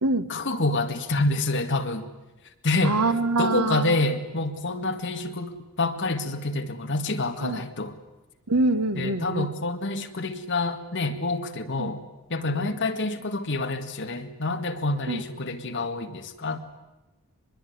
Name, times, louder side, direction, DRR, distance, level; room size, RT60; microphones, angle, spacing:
voice 1, 0.3-2.1 2.6-3.0 3.4-8.0 9.0-12.0 12.3-16.6, left 2 dB, 55° left, 6 dB, 2.0 m, -27 dB
voice 2, 2.8-4.0 7.4-7.6 8.5-9.5 11.8-11.9 12.6-12.7 15.1-15.2, right 2 dB, 85° right, 10 dB, 1.6 m, -25 dB
24.0 x 21.5 x 9.5 m, 1.1 s
head